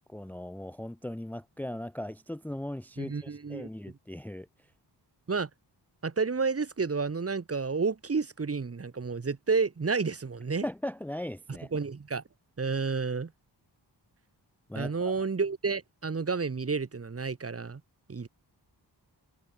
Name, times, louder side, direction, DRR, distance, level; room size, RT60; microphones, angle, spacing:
voice 1, 0.1-4.5 10.6-11.7 14.7-15.1, left 1 dB, 5° left, 0.7 m, -38 dB
voice 2, 3.0-3.7 5.3-5.5 6.0-10.6 11.7-12.2 12.6-13.3 14.7-17.8 18.1-18.3, right 4 dB, 35° right, 1.5 m, -30 dB
wide cardioid pair, 145°, 43 cm